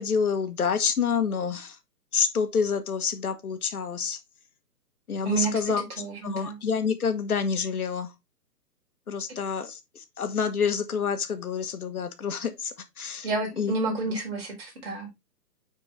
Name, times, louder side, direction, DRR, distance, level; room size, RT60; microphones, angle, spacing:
voice 1, 0.0-1.8 2.1-4.2 5.1-5.8 6.2-8.1 9.1-9.8 10.2-13.3 13.6-13.7, left 6 dB, 60° left, 1.4 m, -27 dB
voice 2, 6.0-6.6 13.2-15.3, right 3 dB, 35° right, 4.5 m, -30 dB
9.3 x 4.5 x 3.3 m
hypercardioid pair, 170°, 49 cm